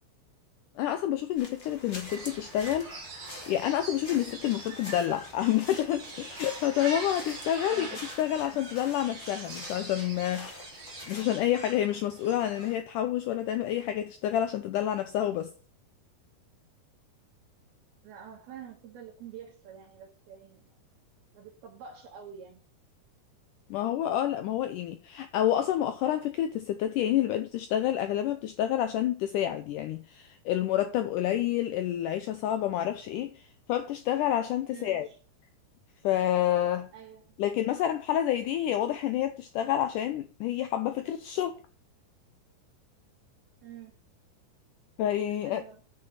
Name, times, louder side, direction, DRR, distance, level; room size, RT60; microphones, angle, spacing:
voice 1, 0.8-10.7 11.1-15.5 23.7-33.4 33.7-35.1 36.0-36.9 37.4-41.6 45.0-45.6, left 12 dB, 90° left, 1.8 m, -29 dB
sound 1, 1.4-11.2, left 2 dB, 30° left, 3.0 m, -46 dB
sound 2, 1.9-12.8, right 3 dB, 35° right, 3.9 m, -43 dB
voice 2, 7.7-8.0 18.0-20.7 21.3-22.6 34.7-35.2 36.9-37.4 43.6-43.9 45.4-45.8, right 8 dB, 80° right, 3.4 m, -47 dB
8.2 x 6.5 x 6.7 m
omnidirectional pair, 4.5 m